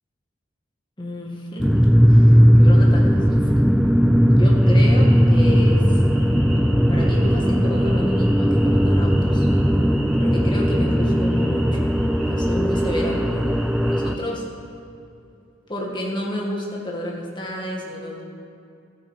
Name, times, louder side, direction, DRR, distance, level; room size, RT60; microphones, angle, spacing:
voice 1, 1.0-3.8 4.3-6.0 6.9-9.5 10.2-11.8 12.3-14.4 15.7-18.2, left 1 dB, 25° left, -2 dB, 1.8 m, -31 dB
sound 1, 1.6-14.2, equal, ahead, 0.3 m, -17 dB
sound 2, 3.4-14.0, left 1 dB, 45° left, 2.5 m, -42 dB
sound 3, 4.6-14.2, right 1 dB, 45° right, 3.4 m, -43 dB
13.0 x 9.1 x 5.7 m, 2.5 s
head